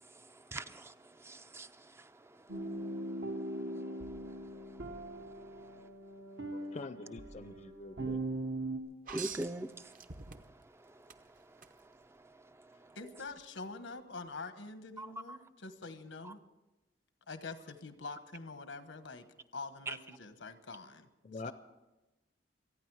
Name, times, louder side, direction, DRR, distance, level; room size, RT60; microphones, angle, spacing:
voice 1, 0.5-0.9 1.2-1.7 9.1-9.9 15.0-15.4 19.9-20.0, right 1 dB, 15° right, 0.4 m, -40 dB
sound 1, 2.5-8.8, right 2 dB, 75° right, 1.5 m, -40 dB
voice 2, 6.5-8.2 21.2-21.5, left 3 dB, 40° left, 0.6 m, -45 dB
sound 2, 9.1-10.7 11.1-11.7 13.3-13.4, right 6 dB, 50° right, 0.8 m, -45 dB
voice 3, 12.9-16.4 17.3-19.2 19.5-21.1 21.4-21.5, left 3 dB, 85° left, 1.2 m, -45 dB
26.5 x 9.5 x 4.8 m
head